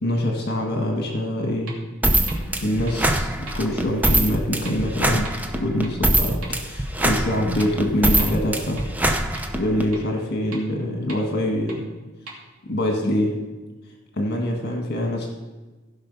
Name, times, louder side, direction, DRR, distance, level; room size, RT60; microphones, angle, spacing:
voice 1, 0.0-1.7 2.6-5.3 5.6-8.8 9.6-11.8 12.6-13.3 14.2-15.3, left 1 dB, 50° left, 1 dB, 1.7 m, -24 dB
sound 1, 1.1-1.2 1.7-1.8 2.3-2.4 2.9-3.0 3.5-3.6 4.1-4.2 4.7-4.8 5.2-5.3 5.8-5.9 6.4-6.5 7.0-7.1 7.6-7.7 8.2-8.3 8.8-8.9 9.3-9.4 9.9-10.0 10.5-10.6 11.1-11.2 11.7-11.8 12.3-12.4, right 3 dB, 85° right, 2.7 m, -38 dB
sound 2, 2.0-9.9, right 1 dB, 10° right, 0.7 m, -23 dB
15.5 x 5.7 x 5.5 m, 1.2 s
head